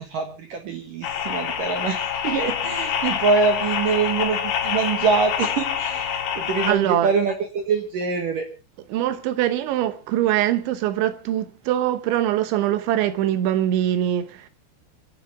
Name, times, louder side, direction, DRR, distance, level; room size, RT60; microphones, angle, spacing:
voice 1, 0.0-8.5, right 5 dB, 60° right, 2.5 m, -24 dB
sound 1, 1.0-6.7, left 8 dB, 65° left, 3.5 m, -26 dB
voice 2, 6.7-7.1 8.9-14.5, right 12 dB, 75° right, 3.3 m, -23 dB
26.5 x 11.0 x 3.5 m
omnidirectional pair, 5.5 m